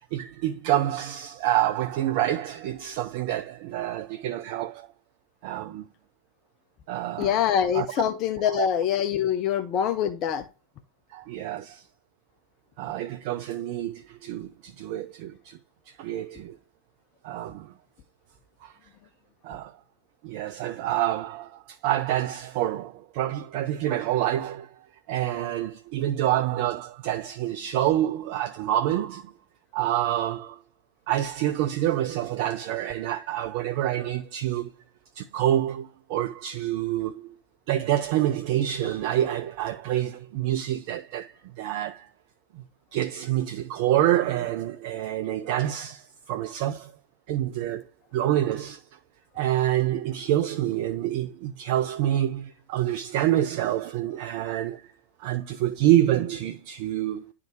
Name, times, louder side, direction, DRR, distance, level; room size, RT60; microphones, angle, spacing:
voice 1, 0.1-4.9 5.4-5.9 6.9-7.4 7.7-8.0 8.4-8.7 11.1-11.8 12.8-15.6 15.9-16.6 17.2-17.7 18.6-18.7 19.4-19.7 20.2-24.7 25.1-29.3 29.7-30.6 31.1-34.7 35.2-37.4 37.7-42.1 42.5-42.6 42.9-46.9 47.3-47.9 48.1-48.8 49.4-54.9 55.2-57.3, right 12 dB, 45° right, 0.5 m, -27 dB
voice 2, 7.2-10.4, left 9 dB, 35° left, 0.7 m, -24 dB
10.5 x 3.6 x 4.5 m
figure-of-eight pair, 90°, 0 cm